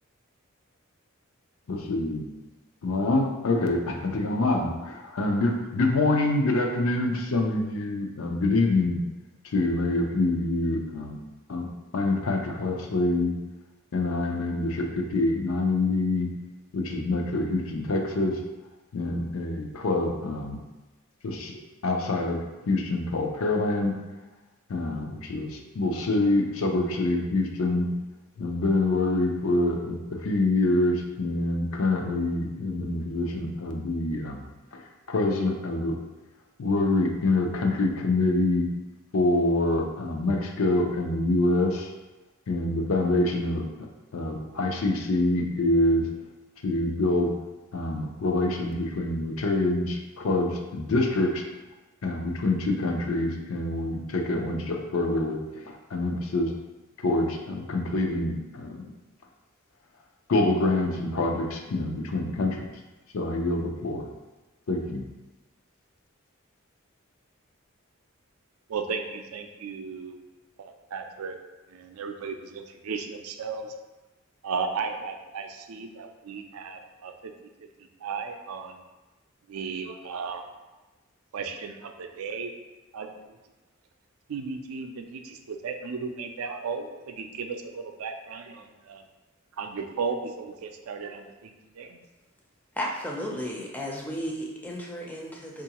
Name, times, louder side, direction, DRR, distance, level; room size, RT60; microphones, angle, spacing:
voice 1, 1.7-2.2 2.8-9.0 9.4-11.2 11.5-11.7 11.9-13.3 13.9-16.3 16.7-18.4 18.9-20.6 21.2-21.5 21.8-23.9 24.7-27.9 28.4-34.4 34.7-36.0 36.6-38.7 39.1-41.9 42.5-46.1 46.6-47.3 47.7-51.4 52.0-56.5 57.0-58.8 60.3-62.7 63.1-64.1 64.7-65.0, left 2 dB, 75° left, 3 dB, 0.5 m, -26 dB
voice 2, 68.7-70.2 70.6-71.4 71.7-73.7 74.4-77.3 77.6-78.8 79.5-80.5 81.3-82.5 82.9-83.4 84.3-89.0 89.6-92.0, right 5 dB, 90° right, 5 dB, 0.4 m, -35 dB
voice 3, 92.8-95.6, equal, 10° left, -2 dB, 0.4 m, -34 dB
4.5 x 2.4 x 2.8 m, 1.1 s
head